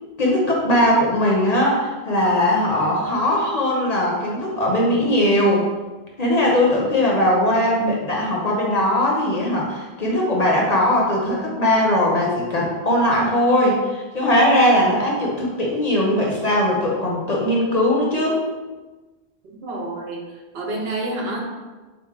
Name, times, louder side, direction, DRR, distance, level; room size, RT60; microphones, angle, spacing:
voice 1, 0.2-5.7 6.2-18.4, left 1 dB, 45° left, -2 dB, 0.7 m, -19 dB
voice 2, 19.6-20.3 20.5-21.4, right 2 dB, 70° right, 0 dB, 0.9 m, -28 dB
3.9 x 3.0 x 3.7 m, 1.3 s
omnidirectional pair, 1.1 m